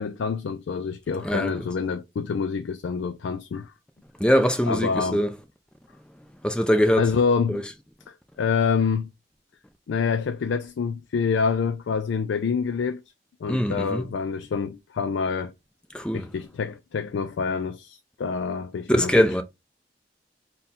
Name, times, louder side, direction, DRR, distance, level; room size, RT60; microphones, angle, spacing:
voice 1, 0.0-3.7 4.7-5.2 7.0-7.6 8.4-9.1 9.9-13.0 13.4-15.5 16.1-19.4, left 5 dB, 85° left, 0.3 m, -26 dB
voice 2, 1.2-1.5 4.2-5.3 6.4-7.1 7.5-7.6 13.5-14.0 15.9-16.3 18.9-19.4, equal, 5° left, 0.5 m, -22 dB
3.7 x 2.3 x 4.1 m
head